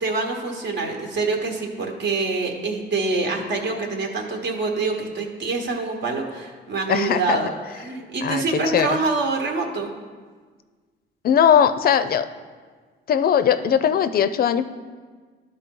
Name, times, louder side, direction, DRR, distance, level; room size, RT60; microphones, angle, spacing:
voice 1, 0.0-7.5 7.8-9.9, right 3 dB, 60° right, 2 dB, 1.2 m, -25 dB
voice 2, 6.9-7.4 8.2-8.9 11.2-12.3 13.1-14.7, left 8 dB, 50° left, 13 dB, 0.4 m, -19 dB
11.5 x 4.1 x 3.8 m, 1.5 s
cardioid pair, 90°, 20 cm